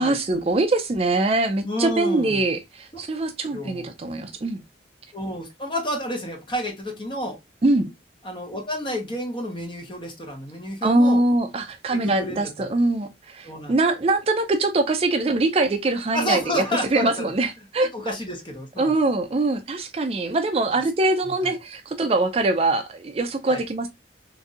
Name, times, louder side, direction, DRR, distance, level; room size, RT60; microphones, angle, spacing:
voice 1, 0.0-4.6 7.6-7.9 10.8-16.6 16.9-18.1 18.8-23.9, right 2 dB, 30° right, 0.3 m, -23 dB
voice 2, 1.6-2.4 3.5-3.9 5.1-7.4 8.2-11.2 11.9-12.5 13.4-13.7 16.1-17.3 17.8-18.9 20.7-20.8 21.4-21.5 23.5-23.6, left 1 dB, 25° left, 0.9 m, -30 dB
4.0 x 2.6 x 2.4 m
head